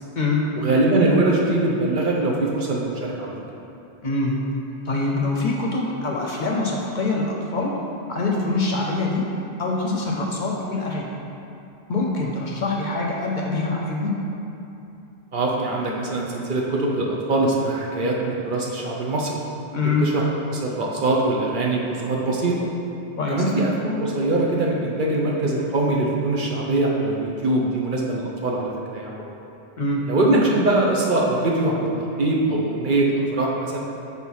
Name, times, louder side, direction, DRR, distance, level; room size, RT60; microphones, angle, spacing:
voice 1, 0.6-3.3 15.3-19.4 20.0-20.2 20.5-22.6 23.3-29.2 30.1-31.9 32.2-33.8, right 2 dB, 55° right, -2 dB, 0.8 m, -22 dB
voice 2, 4.0-4.4 4.9-7.7 8.1-9.2 9.6-11.0 11.9-14.1 19.7-20.1 23.2-23.4 29.2-29.3 29.8-30.0, left 3 dB, 55° left, -1 dB, 0.7 m, -24 dB
4.6 x 4.2 x 5.4 m, 2.8 s
omnidirectional pair, 1.1 m